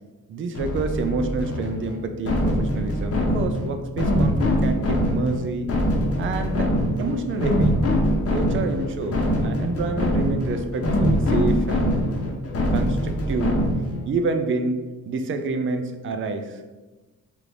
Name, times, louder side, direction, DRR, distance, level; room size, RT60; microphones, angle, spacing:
voice 1, 0.3-5.7 6.2-6.7 7.0-7.8 8.3-12.0 12.7-13.6 14.1-16.6, right 3 dB, 40° right, 7 dB, 0.4 m, -28 dB
sound 1, 0.5-14.0, equal, 45° left, 0.8 m, -23 dB
3.4 x 2.5 x 4.5 m, 1.2 s
cardioid pair, 130°, 33 cm